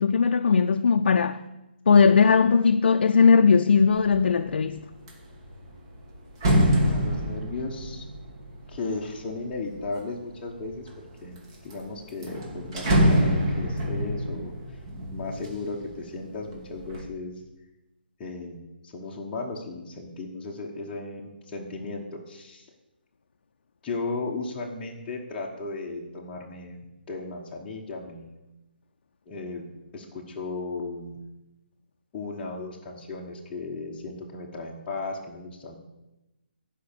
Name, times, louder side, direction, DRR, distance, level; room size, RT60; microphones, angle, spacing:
voice 1, 0.0-1.4 1.9-4.8, left 5 dB, 65° left, 0.5 m, -19 dB
sound 1, 4.0-4.3 4.7-10.1 10.7-11.4 11.7-11.8 12.1-16.0 16.4-17.0, equal, 25° right, 1.7 m, -26 dB
voice 2, 6.8-8.0 8.7-10.9 11.2-14.5 15.1-17.4 18.2-22.7 23.8-28.4 29.3-31.2 32.1-35.8, left 3 dB, 15° left, 1.0 m, -35 dB
11.0 x 5.3 x 6.8 m
hypercardioid pair, 165°, 6 cm